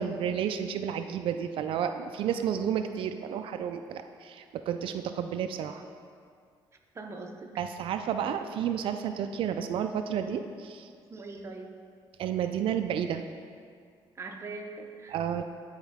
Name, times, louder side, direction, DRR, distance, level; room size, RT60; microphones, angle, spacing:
voice 1, 0.0-5.8 7.6-10.9 12.2-13.2 15.1-15.4, right 8 dB, 70° right, 7 dB, 0.4 m, -31 dB
voice 2, 6.9-7.5 11.1-11.7 14.1-15.2, right 3 dB, 30° right, 2 dB, 0.7 m, -41 dB
10.0 x 4.4 x 3.5 m, 2.2 s
cardioid pair, 110°, 9 cm